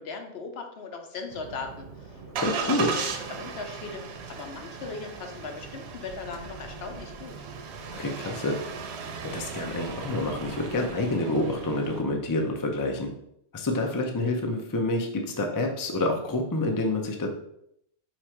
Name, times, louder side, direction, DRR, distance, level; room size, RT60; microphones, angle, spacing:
voice 1, 0.0-4.0 4.3-7.4, left 4 dB, 70° left, 4 dB, 0.9 m, -39 dB
Engine starting, 1.3-12.0, right 5 dB, 75° right, 0.9 m, -37 dB
voice 2, 2.4-2.9 7.9-8.6 9.3-13.1 13.5-17.3, left 2 dB, 30° left, 3 dB, 0.4 m, -28 dB
4.4 x 2.4 x 4.3 m, 0.75 s
omnidirectional pair, 1.1 m